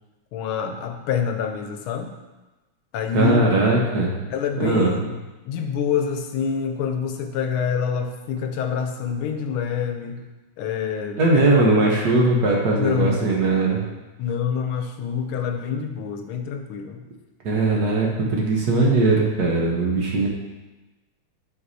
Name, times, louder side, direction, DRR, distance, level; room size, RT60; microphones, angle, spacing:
voice 1, 0.3-2.1 2.9-3.4 4.3-5.1 5.5-10.2 10.6-11.5 12.8-13.2 14.2-17.0, left 7 dB, 85° left, 5 dB, 1.5 m, -26 dB
voice 2, 3.1-4.1 4.6-5.1 11.2-13.8 17.4-20.3, right 2 dB, 55° right, -2 dB, 1.4 m, -19 dB
7.9 x 6.2 x 2.7 m, 1.1 s
omnidirectional pair, 2.3 m